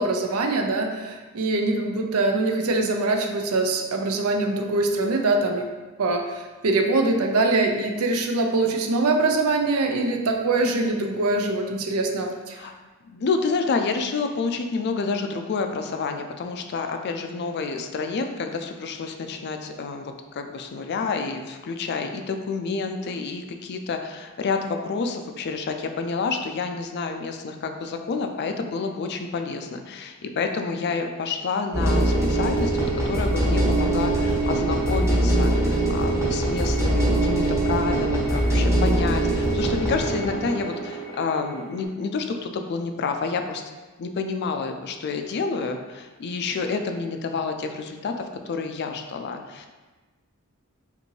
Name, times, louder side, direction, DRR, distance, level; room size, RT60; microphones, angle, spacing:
voice 1, 0.0-5.7 6.0-12.6, right 2 dB, 85° right, 4 dB, 0.5 m, -23 dB
voice 2, 13.1-43.6 44.0-48.1 48.5-49.7, left 4 dB, 50° left, 5 dB, 0.4 m, -29 dB
sound 1, 31.7-41.8, right 1 dB, 15° right, 0.9 m, -23 dB
5.1 x 2.6 x 3.1 m, 1.2 s
head